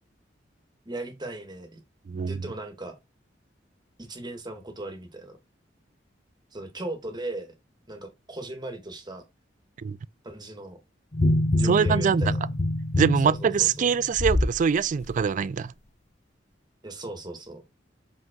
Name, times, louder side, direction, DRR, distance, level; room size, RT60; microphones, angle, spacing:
voice 1, 0.8-1.8 2.3-3.0 4.0-5.4 6.5-7.5 7.9-9.2 10.2-10.8 11.5-12.4 13.2-13.9 16.8-17.6, right 2 dB, 25° right, 1.5 m, -37 dB
voice 2, 2.1-2.4 9.8-10.0 11.6-12.2 13.0-15.7, right 6 dB, 45° right, 0.3 m, -23 dB
sound 1, 11.1-14.6 15.0-15.2, left 1 dB, 40° left, 0.7 m, -25 dB
5.4 x 5.3 x 3.7 m
head